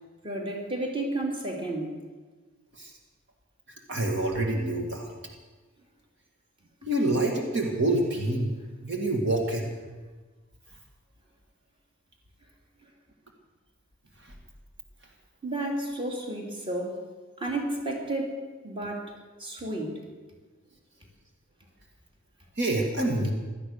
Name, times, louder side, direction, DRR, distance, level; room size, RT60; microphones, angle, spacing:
voice 1, 0.2-2.0 15.4-17.0 17.4-19.1 19.4-20.0, right 1 dB, 25° right, 1 dB, 2.7 m, -32 dB
voice 2, 3.9-5.1 6.8-8.5 8.8-9.7 22.6-23.3, right 1 dB, 55° right, 2 dB, 2.0 m, -26 dB
17.0 x 12.5 x 6.6 m, 1.3 s
head